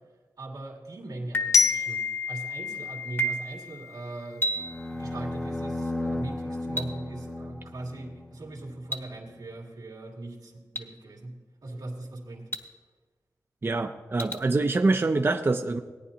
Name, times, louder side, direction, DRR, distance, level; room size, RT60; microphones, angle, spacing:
voice 1, 0.4-2.0 2.3-4.5 4.8-11.3 11.6-12.5, right 2 dB, 90° right, -1 dB, 2.2 m, -40 dB
sound 1, 1.3-1.8 3.2-3.6 4.4-4.8 6.8-6.9 8.9-9.0 10.8-10.9 12.5-12.6 14.2-14.3, right 1 dB, 35° left, 1.3 m, -29 dB
Glockenspiel, 1.5-4.4, left 5 dB, 55° left, 0.6 m, -28 dB
sound 2, 4.5-8.8, left 2 dB, 10° left, 0.7 m, -35 dB
voice 2, 13.6-15.8, right 3 dB, 35° right, 5 dB, 0.5 m, -25 dB
18.0 x 10.0 x 2.9 m, 1.3 s
wide cardioid pair, 85°, 7 cm